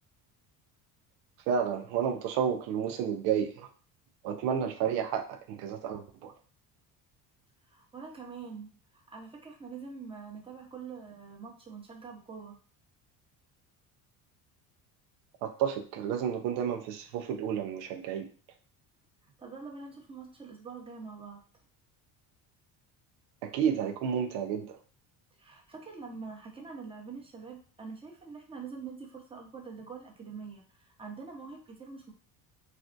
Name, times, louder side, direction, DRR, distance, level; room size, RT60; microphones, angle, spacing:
voice 1, 1.5-3.7 4.2-6.3 15.4-18.3 23.4-24.8, right 8 dB, 80° right, 6 dB, 0.6 m, -31 dB
voice 2, 7.7-12.6 19.4-21.4 25.4-32.1, right 5 dB, 15° right, 0 dB, 0.8 m, -45 dB
3.4 x 2.4 x 2.5 m, 0.40 s
supercardioid pair, 95°, 41 cm